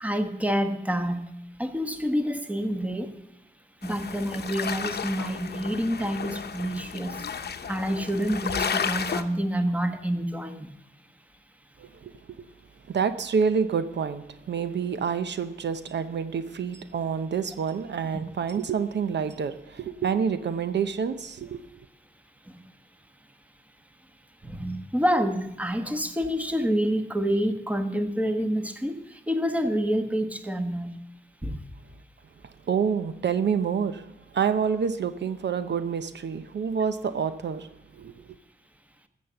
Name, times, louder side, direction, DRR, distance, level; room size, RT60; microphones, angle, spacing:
voice 1, 0.0-1.2 1.6-3.1 3.8-7.1 7.7-10.7 24.4-29.0 29.3-30.9 31.4-31.6, equal, 10° right, 7 dB, 1.3 m, -27 dB
sound 1, 3.8-9.2, left 6 dB, 65° left, 0.8 m, -33 dB
voice 2, 11.8-12.4 12.9-21.6 32.7-34.1 34.3-37.7 38.0-38.1, right 6 dB, 75° right, 11 dB, 0.7 m, -28 dB
14.0 x 7.5 x 6.8 m, 0.89 s
wide cardioid pair, 95°, 18 cm